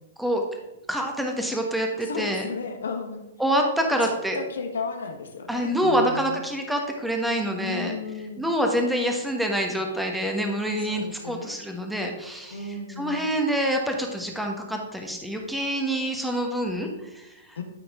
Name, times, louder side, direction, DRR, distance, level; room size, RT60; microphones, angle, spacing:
voice 1, 0.9-2.4 3.4-4.4 5.5-7.9 8.4-12.6 13.0-17.6, equal, ahead, 2 dB, 1.3 m, -26 dB
voice 2, 2.0-3.2 4.3-6.4 7.5-8.5 10.8-11.5 12.5-13.2 17.5-17.6, left 4 dB, 80° left, 6 dB, 1.3 m, -34 dB
12.0 x 4.6 x 3.7 m, 0.99 s
hypercardioid pair, 120°, 0 cm